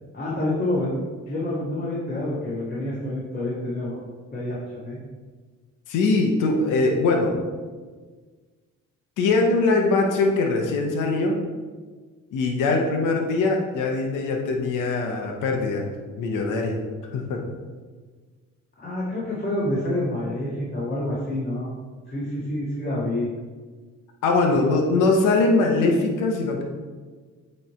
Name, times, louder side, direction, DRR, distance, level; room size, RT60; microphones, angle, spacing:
voice 1, 0.1-1.0 1.3-4.0 4.3-5.0 18.8-21.7 22.1-23.3 24.5-24.8, left 1 dB, 30° left, -8 dB, 1.8 m, -28 dB
voice 2, 5.9-7.3 9.2-11.4 12.3-15.9 16.2-16.8 17.1-17.4 24.2-26.6, left 3 dB, 90° left, 2 dB, 0.9 m, -22 dB
8.0 x 3.3 x 4.3 m, 1.4 s
cardioid pair, 90°, 30 cm